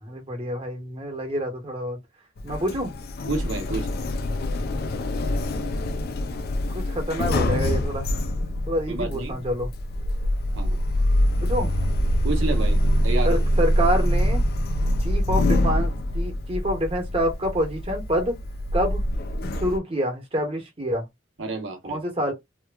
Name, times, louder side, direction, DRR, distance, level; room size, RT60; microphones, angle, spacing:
voice 1, 0.0-2.0 2.4-2.9 6.7-8.2 8.7-9.7 11.4-11.7 13.2-14.4 15.0-18.3 18.7-19.0 19.6-21.0 21.8-22.3, equal, 30° right, 1.1 m, -27 dB
Sliding door, 2.4-19.8, left 1 dB, 50° left, 0.4 m, -24 dB
voice 2, 3.3-3.9 8.9-9.4 10.5-10.8 12.2-13.4 15.3-15.4 21.4-22.0, right 2 dB, 75° right, 0.9 m, -30 dB
2.9 x 2.2 x 2.2 m
head